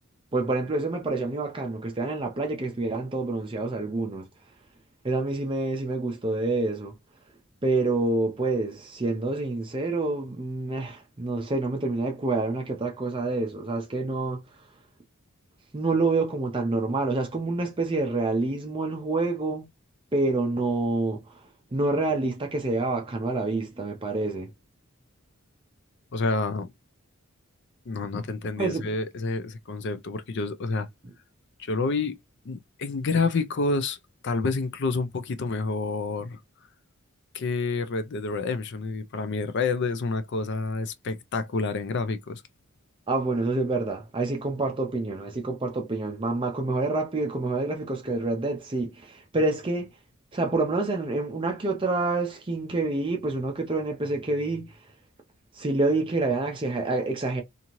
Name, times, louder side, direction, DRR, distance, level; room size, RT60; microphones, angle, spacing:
voice 1, 0.3-4.3 5.0-6.9 7.6-14.4 15.7-19.7 20.1-21.2 21.7-24.5 28.6-28.9 43.1-49.9 50.3-54.8 55.5-57.4, right 2 dB, 25° right, 0.5 m, -27 dB
voice 2, 26.1-26.7 27.9-30.9 31.6-32.2 32.5-34.0 34.2-36.4 37.3-42.4, left 3 dB, 55° left, 0.4 m, -28 dB
2.7 x 2.5 x 2.9 m
head